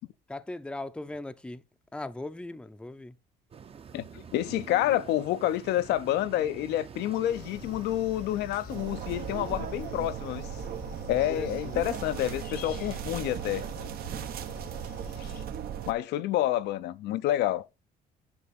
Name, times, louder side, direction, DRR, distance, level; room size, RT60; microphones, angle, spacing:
voice 1, 0.3-1.6 1.9-3.1 11.3-11.7, left 2 dB, 5° left, 0.6 m, -39 dB
sound 1, 3.5-9.6, right 7 dB, 35° right, 0.9 m, -47 dB
voice 2, 3.9-10.5 11.1-13.9 15.9-17.7, left 13 dB, 80° left, 0.7 m, -28 dB
sound 2, 7.3-15.5, left 9 dB, 65° left, 1.2 m, -46 dB
sound 3, 8.7-15.9, right 9 dB, 65° right, 1.1 m, -37 dB
9.8 x 3.5 x 5.8 m
cardioid pair, 110°, 17 cm